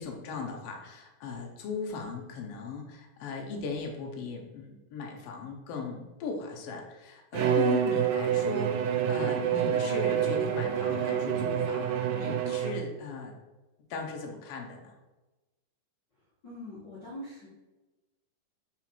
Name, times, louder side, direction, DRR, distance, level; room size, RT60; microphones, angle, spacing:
voice 1, 0.0-13.3 13.9-14.9, left 4 dB, 65° left, 1 dB, 1.6 m, -38 dB
Bowed string instrument, 7.3-13.0, right 8 dB, 90° right, 2.3 m, -27 dB
voice 2, 16.4-17.5, left 1 dB, 40° left, -10 dB, 1.9 m, -42 dB
5.0 x 4.4 x 4.3 m, 1.1 s
omnidirectional pair, 3.6 m